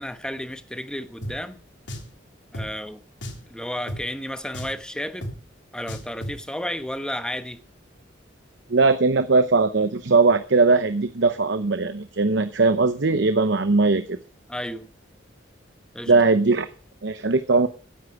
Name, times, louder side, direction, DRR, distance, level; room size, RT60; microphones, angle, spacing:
voice 1, 0.0-1.6 2.5-3.0 3.5-5.4 5.7-7.6 14.5-14.9 15.9-16.1, equal, 5° left, 1.0 m, -32 dB
Drum, 1.2-1.4 1.9-2.1 2.5-2.7 3.2-3.5 3.9-4.0 4.5-4.8 5.2-5.4 5.9-6.4, equal, 75° left, 3.4 m, -34 dB
voice 2, 8.7-14.2 16.1-16.7 17.0-17.7, right 3 dB, 65° right, 0.8 m, -19 dB
16.0 x 10.5 x 4.7 m
head